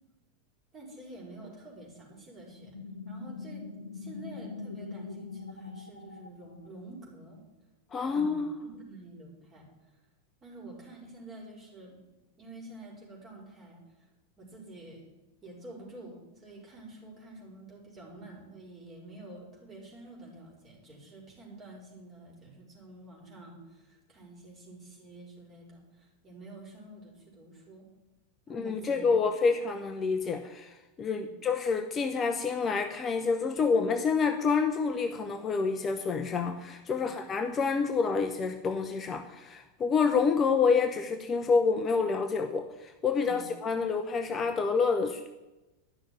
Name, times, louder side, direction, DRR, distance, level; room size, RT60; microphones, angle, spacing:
voice 1, 0.7-3.7 3.9-7.4 8.0-9.7 10.4-12.0 12.4-13.8 14.4-15.0 15.4-27.9 28.5-29.5 31.2-31.4 37.0-37.2 43.2-43.5, right 2 dB, 25° right, -1 dB, 4.5 m, -48 dB
sound 1, 2.5-6.9, left 4 dB, 80° left, 0.9 m, -43 dB
voice 2, 7.9-8.5 28.5-45.3, left 5 dB, 25° left, 7 dB, 0.7 m, -28 dB
11.0 x 6.4 x 9.0 m, 1.1 s
figure-of-eight pair, 90°, 0 cm